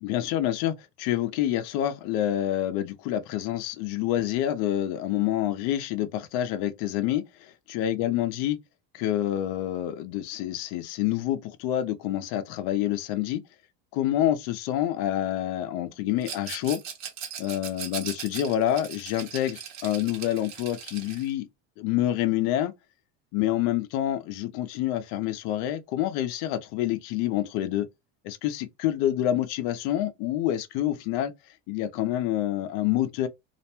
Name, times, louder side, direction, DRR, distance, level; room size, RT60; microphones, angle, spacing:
voice 1, 0.0-8.6 8.9-13.4 13.9-16.8 17.4-21.5 21.8-22.7 23.3-27.9 28.2-31.3 31.7-33.3, left 12 dB, 65° left, 0.6 m, -27 dB
Rattle, 16.2-21.3, right 8 dB, 40° right, 1.0 m, -39 dB
2.5 x 2.1 x 2.9 m
supercardioid pair, 115°, 41 cm